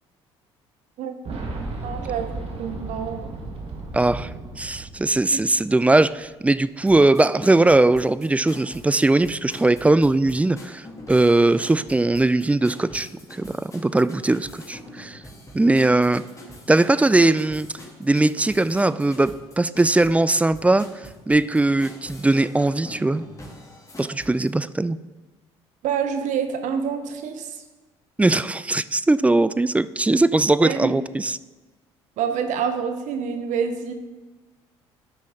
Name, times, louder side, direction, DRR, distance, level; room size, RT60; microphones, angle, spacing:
Boom, 1.2-6.0 6.2-6.3 7.5-7.6, right 3 dB, 45° right, 1.8 m, -34 dB
voice 1, 1.8-2.3 2.6-3.3 5.3-5.4 25.8-27.5 30.6-30.9 32.2-33.9, right 7 dB, 60° right, 7 dB, 1.0 m, -27 dB
voice 2, 3.9-15.2 15.5-16.2 16.7-17.7 18.0-23.3 24.0-25.0 28.2-31.4, right 2 dB, 10° right, 16 dB, 0.3 m, -20 dB
sound 1, 6.9-24.5, left 1 dB, 25° left, 2.6 m, -44 dB
11.0 x 6.2 x 3.7 m, 1.2 s
hypercardioid pair, 55°, 14 cm